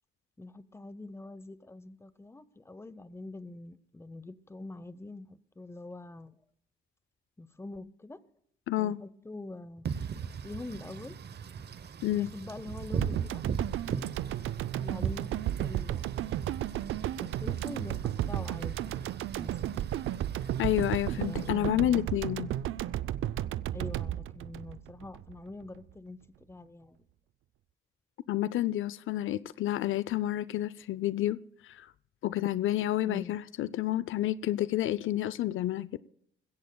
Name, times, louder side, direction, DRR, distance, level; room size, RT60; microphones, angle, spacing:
voice 1, 0.4-6.4 7.4-8.2 8.8-11.2 12.1-13.4 14.8-16.4 17.2-19.1 19.4-19.8 21.1-22.0 23.7-26.2 26.5-27.1 33.0-33.4, left 2 dB, 10° left, 0.8 m, -44 dB
voice 2, 8.7-9.0 12.0-12.3 20.6-22.5 28.3-31.4 31.6-31.9 32.2-36.0, left 13 dB, 80° left, 0.5 m, -29 dB
Wind / Rain, 9.8-21.5, right 7 dB, 55° right, 0.8 m, -39 dB
sound 1, 13.0-25.3 25.6-25.7, right 12 dB, 80° right, 0.5 m, -33 dB
21.5 x 16.0 x 2.2 m
cardioid pair, 95°, 20 cm